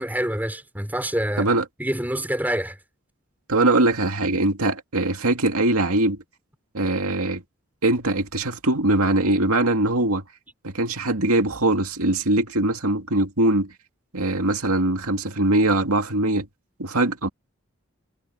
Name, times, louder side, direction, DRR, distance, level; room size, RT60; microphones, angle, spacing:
voice 1, 0.0-1.5 1.8-2.8, right 1 dB, 10° right, 4.6 m, -26 dB
voice 2, 3.5-6.2 6.7-7.4 7.8-10.2 10.6-13.7 14.1-16.5 16.8-17.3, right 2 dB, 85° right, 2.4 m, -21 dB
head